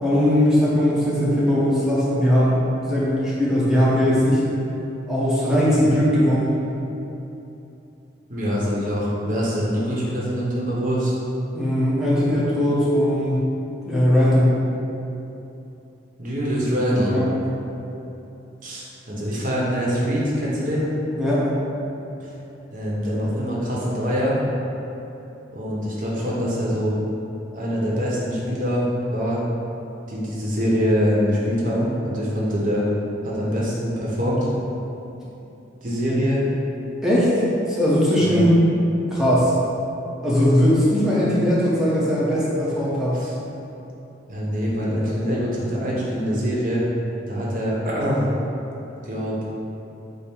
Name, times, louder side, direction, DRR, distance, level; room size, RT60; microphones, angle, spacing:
voice 1, 0.0-4.4 5.1-6.5 11.5-13.4 13.8-14.5 17.1-17.3 21.2-21.5 37.0-37.4 37.7-38.5 39.1-39.5 40.2-43.2, equal, ahead, -9 dB, 0.7 m, -19 dB
voice 2, 8.3-11.1 16.2-17.1 18.6-20.9 22.2-22.3 22.7-24.4 25.5-26.9 27.5-28.9 29.1-29.4 30.1-32.9 33.2-34.5 35.8-36.4 38.2-38.4 43.1-43.3 44.3-46.8 47.3-48.2 49.0-49.4, equal, 45° right, -5 dB, 0.8 m, -24 dB
5.3 x 2.0 x 4.3 m, 2.9 s
head